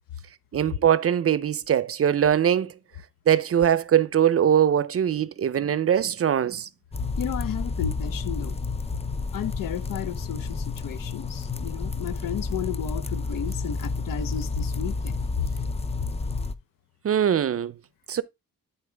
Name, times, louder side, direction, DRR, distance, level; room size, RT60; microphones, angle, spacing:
voice 1, 0.5-2.7 3.3-6.7 17.0-17.7 18.1-18.2, right 9 dB, 40° right, 0.6 m, -22 dB
sound 1, 6.9-16.5, left 3 dB, 20° left, 0.5 m, -30 dB
voice 2, 7.2-8.6 9.3-15.5, left 9 dB, 70° left, 0.8 m, -33 dB
12.0 x 4.5 x 3.4 m
cardioid pair, 130°, 34 cm